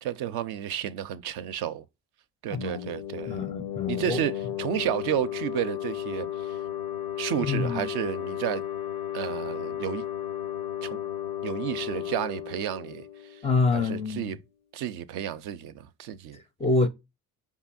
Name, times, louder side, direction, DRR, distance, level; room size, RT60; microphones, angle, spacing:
voice 1, 0.0-1.8 2.4-3.5 3.9-6.6 7.2-8.6 9.1-10.0 10.8-11.0 11.4-13.4 13.7-14.4 14.7-16.4, right 10 dB, 60° right, 0.5 m, -31 dB
sound 1, 2.5-14.0, left 11 dB, 85° left, 0.6 m, -34 dB
voice 2, 2.5-2.9 3.3-4.2 7.4-7.9 13.4-14.4 16.3-16.9, left 3 dB, 15° left, 0.4 m, -27 dB
4.9 x 2.7 x 2.3 m
hypercardioid pair, 50°, 45 cm